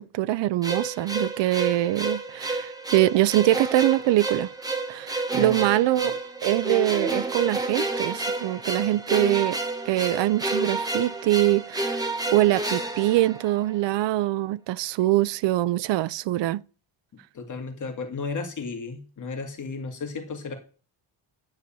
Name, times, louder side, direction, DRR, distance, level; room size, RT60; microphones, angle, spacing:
voice 1, 0.0-4.5 4.9-9.6 9.9-12.0 12.3-16.6, right 15 dB, 65° right, 0.5 m, -23 dB
sound 1, 0.6-13.9, right 2 dB, 10° right, 1.2 m, -30 dB
voice 2, 5.3-5.7 17.1-20.5, left 4 dB, 40° left, 2.2 m, -34 dB
9.7 x 6.9 x 8.7 m
cardioid pair, 175°, 47 cm